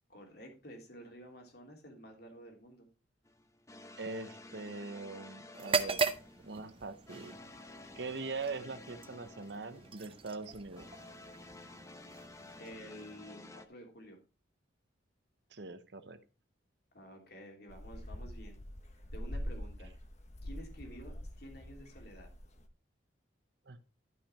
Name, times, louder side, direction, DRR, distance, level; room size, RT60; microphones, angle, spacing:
voice 1, 0.1-2.9 12.6-14.2 16.9-18.6 19.1-19.9 20.4-22.3, equal, 55° left, 3.0 m, -51 dB
sound 1, 3.2-13.7, left 2 dB, 15° left, 0.8 m, -53 dB
voice 2, 4.0-6.0 6.4-7.4 8.0-10.9 15.5-16.2 23.7-23.8, right 3 dB, 65° right, 0.8 m, -42 dB
sound 2, 5.5-13.4, right 5 dB, 30° right, 0.7 m, -39 dB
sound 3, 17.7-22.6, equal, 40° left, 1.3 m, -44 dB
12.5 x 5.9 x 4.3 m
head